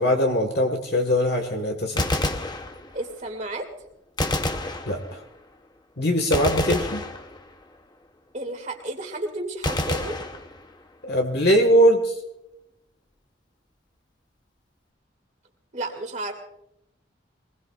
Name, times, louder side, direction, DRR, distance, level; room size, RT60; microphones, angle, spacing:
voice 1, 0.0-2.1 4.9-5.2 6.0-7.0 11.0-12.1, equal, 55° left, 3 dB, 1.5 m, -21 dB
Gunshot gunfire, 1.8-3.2 4.2-5.4 6.3-7.7 9.6-11.0, left 2 dB, 20° left, 0.8 m, -28 dB
voice 2, 2.9-3.7 6.7-6.8 8.3-10.2 15.7-16.3, right 1 dB, 40° right, 3 dB, 2.5 m, -32 dB
23.5 x 20.0 x 2.5 m, 0.84 s
head